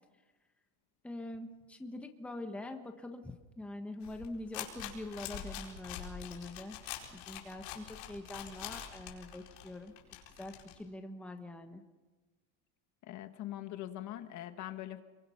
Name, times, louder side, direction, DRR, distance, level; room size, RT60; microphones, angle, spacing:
voice 1, 1.0-6.8 7.1-9.9 10.4-11.8, left 2 dB, 5° left, 5 dB, 1.2 m, -44 dB
sound 1, 4.0-10.7, left 10 dB, 70° left, 4.6 m, -45 dB
voice 2, 13.0-15.0, left 13 dB, 45° left, 9 dB, 1.3 m, -42 dB
29.0 x 23.0 x 5.7 m, 1.2 s
cardioid pair, 170°, 42 cm